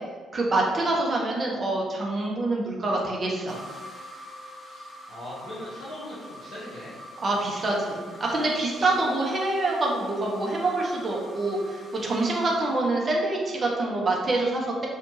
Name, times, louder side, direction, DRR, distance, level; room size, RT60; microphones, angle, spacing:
voice 1, 0.3-3.6 7.2-14.9, right 2 dB, 40° right, -2 dB, 0.6 m, -26 dB
sound 1, 3.5-13.4, equal, 25° left, 1.0 m, -45 dB
voice 2, 4.7-7.0 8.7-8.9, left 1 dB, 55° left, -10 dB, 0.6 m, -40 dB
2.7 x 2.1 x 2.7 m, 1.4 s
figure-of-eight pair, 40°, 0 cm